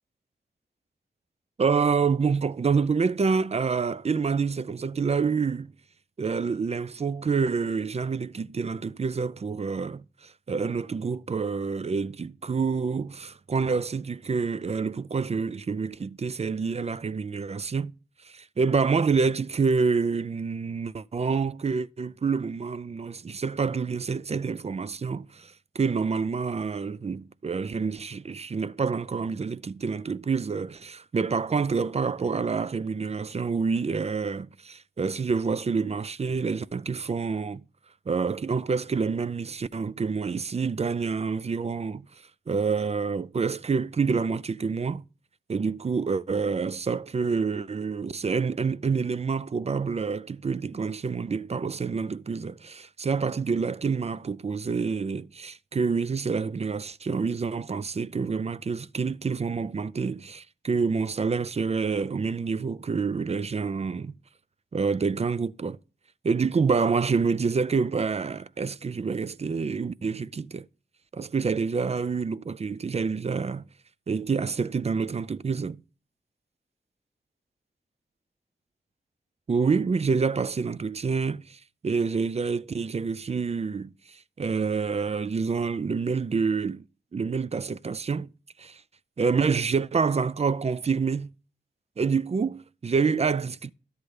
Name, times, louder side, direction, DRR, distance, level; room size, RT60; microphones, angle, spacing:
voice 1, 1.6-5.7 6.2-17.9 18.2-37.6 38.1-42.1 42.5-45.0 45.5-64.2 64.7-65.8 66.2-70.7 71.1-73.6 74.1-75.8 79.5-86.8 87.1-88.3 88.6-88.8 89.2-91.3 92.0-93.7, right 5 dB, 35° right, 0.4 m, -27 dB
12.0 x 7.9 x 3.3 m
cardioid pair, 50°, 18 cm